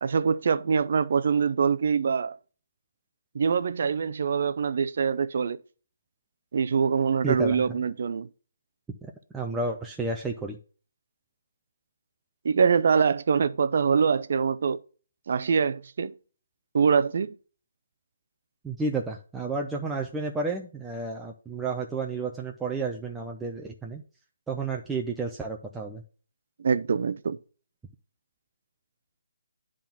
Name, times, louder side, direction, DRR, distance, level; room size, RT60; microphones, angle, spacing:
voice 1, 0.0-2.4 3.3-5.6 6.5-8.3 12.4-14.8 15.3-16.1 16.7-17.4 26.6-27.4, right 6 dB, 55° right, 0.6 m, -24 dB
voice 2, 7.2-7.8 9.0-10.6 18.6-24.0 24.5-26.0, right 3 dB, 5° right, 0.7 m, -31 dB
10.5 x 3.7 x 5.9 m
figure-of-eight pair, 150°, 0 cm